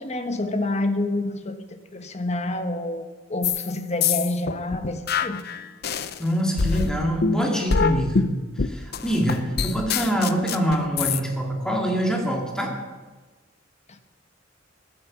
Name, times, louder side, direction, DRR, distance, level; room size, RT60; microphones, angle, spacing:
voice 1, 0.0-5.4, left 2 dB, 35° left, 7 dB, 1.3 m, -28 dB
sound 1, 3.4-3.7 4.0-6.2 6.6-11.2, left 5 dB, 55° left, 0.7 m, -25 dB
voice 2, 6.2-8.3 8.6-12.7, equal, 5° left, 0 dB, 2.7 m, -24 dB
14.5 x 11.0 x 7.4 m, 1.3 s
head